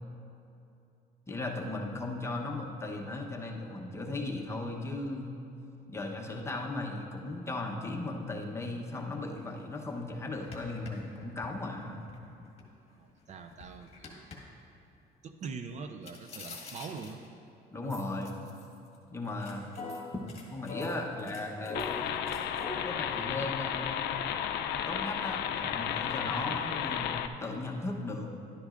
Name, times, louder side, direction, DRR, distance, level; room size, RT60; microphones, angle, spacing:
voice 1, 1.3-5.3 5.9-12.1 17.7-18.4 19.1-19.7 20.5-21.8 22.8-24.1 24.9-28.3, left 2 dB, 15° left, 0 dB, 0.9 m, -37 dB
sound 1, 9.4-9.5 9.8-9.9 10.4-12.6 13.1-14.4 16.0-17.3 17.9-19.0 19.3-22.7, left 3 dB, 40° left, 1.6 m, -44 dB
voice 2, 13.0-14.3 15.2-17.2, right 5 dB, 45° right, 7 dB, 0.4 m, -43 dB
sound 2, 21.7-27.3, left 9 dB, 75° left, 0.5 m, -33 dB
11.5 x 9.6 x 2.5 m, 2.8 s
cardioid pair, 110°, 17 cm